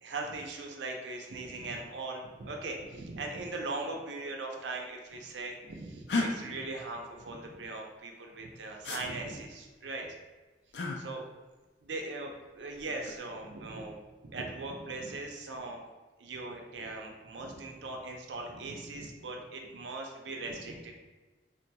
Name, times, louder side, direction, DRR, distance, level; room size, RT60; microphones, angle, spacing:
voice 1, 0.0-10.1 11.0-11.2 11.8-15.8 16.2-21.0, right 2 dB, 90° right, 1 dB, 0.6 m, -40 dB
sound 1, 6.1-6.3 8.8-9.0 10.7-11.0 12.8-13.2, left 3 dB, 70° left, 0.4 m, -31 dB
3.7 x 2.9 x 2.2 m, 1.2 s
head